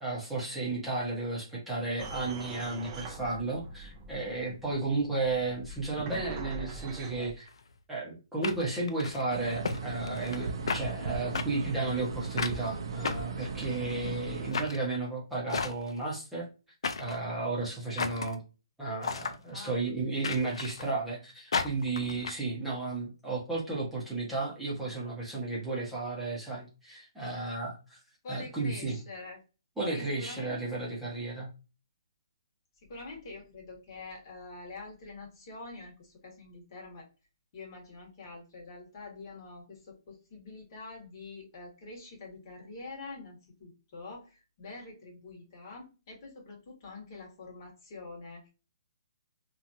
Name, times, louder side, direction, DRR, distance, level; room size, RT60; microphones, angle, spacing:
voice 1, 0.0-7.5 7.9-16.5 17.0-18.4 18.8-28.0 28.3-29.0 29.8-31.5, right 3 dB, 5° right, -6 dB, 0.9 m, -33 dB
sound 1, 2.0-7.3, right 3 dB, 20° right, 0.5 m, -43 dB
sound 2, 7.5-7.6 8.4-9.2 9.6-9.8 10.1-10.4 10.7-10.8 11.3-11.5 12.4-12.6 13.0-13.9 14.5-14.8 15.5-16.0 16.8-17.2 18.0-18.3 19.0-19.4 20.2-20.9 21.5-22.3, left 5 dB, 75° left, 0.4 m, -33 dB
sound 3, 9.3-14.5, right 4 dB, 65° right, 0.6 m, -37 dB
voice 2, 27.1-27.5 28.2-29.4 29.9-30.5 32.8-37.1 37.5-48.5, left 3 dB, 40° left, -1 dB, 1.4 m, -46 dB
2.9 x 2.5 x 2.6 m, 0.31 s
hypercardioid pair, 160°, 3 cm